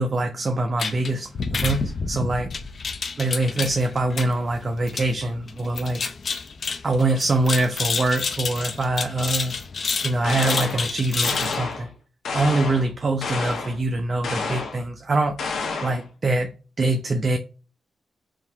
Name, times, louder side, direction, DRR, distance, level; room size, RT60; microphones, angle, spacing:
voice 1, 0.0-2.5 3.2-6.0 6.8-9.6 10.0-11.9 12.3-15.4 15.8-17.4, right 2 dB, 40° right, 0.5 m, -24 dB
sound 1, 0.8-11.6, left 4 dB, 50° left, 0.6 m, -29 dB
sound 2, 10.2-10.9 11.2-11.9 12.2-12.9 13.2-13.8 14.2-14.8 15.4-16.0, left 4 dB, 80° left, 0.9 m, -29 dB
3.7 x 2.8 x 4.4 m
cardioid pair, 90°, 0 cm